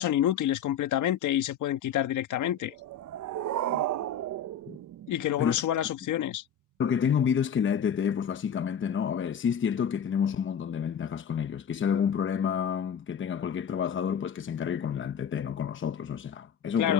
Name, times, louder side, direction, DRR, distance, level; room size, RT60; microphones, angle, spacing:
voice 1, 0.0-2.7 5.1-6.4 16.8-16.9, left 12 dB, 75° left, 1.5 m, -28 dB
sound 1, 2.7-5.7, right 13 dB, 70° right, 0.8 m, -33 dB
voice 2, 6.8-16.9, left 8 dB, 40° left, 0.9 m, -29 dB
cardioid pair, 90°, 30 cm